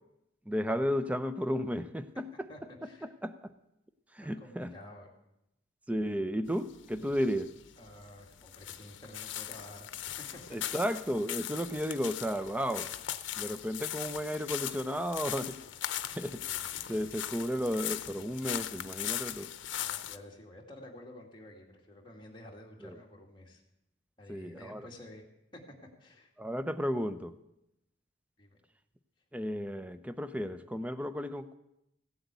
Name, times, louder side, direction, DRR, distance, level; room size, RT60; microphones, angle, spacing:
voice 1, 0.5-2.5 3.0-3.5 4.1-4.7 5.9-7.5 10.5-12.9 13.4-15.6 16.1-19.5 22.8-23.0 24.3-24.9 26.4-27.3 29.3-31.5, equal, 5° right, 11 dB, 0.5 m, -33 dB
voice 2, 2.5-3.1 4.2-5.1 7.8-10.8 16.3-16.8 19.7-23.6 24.2-25.2 25.5-26.3 28.4-28.6, left 1 dB, 25° left, 0 dB, 2.2 m, -51 dB
sound 1, 6.5-20.2, left 11 dB, 80° left, 0.7 m, -39 dB
16.0 x 7.9 x 8.2 m, 0.87 s
head